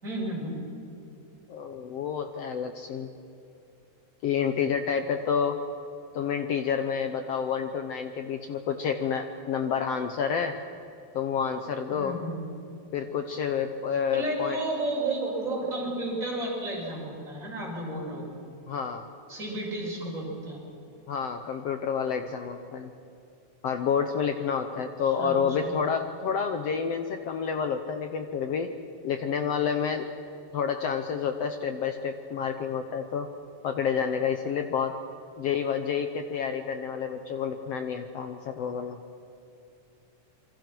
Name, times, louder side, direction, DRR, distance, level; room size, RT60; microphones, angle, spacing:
voice 1, 0.0-0.6 11.9-12.4 14.1-18.3 19.3-20.6 25.1-25.8, right 2 dB, 25° right, -5 dB, 6.7 m, -32 dB
voice 2, 1.5-3.1 4.2-5.6 6.1-10.6 11.1-12.2 12.9-14.6 18.7-19.0 21.1-22.9 23.6-28.7 29.0-30.1 30.5-33.3 33.6-35.0 35.4-39.0, left 7 dB, 65° left, 7 dB, 1.7 m, -29 dB
27.5 x 23.5 x 6.1 m, 2.7 s
omnidirectional pair, 3.6 m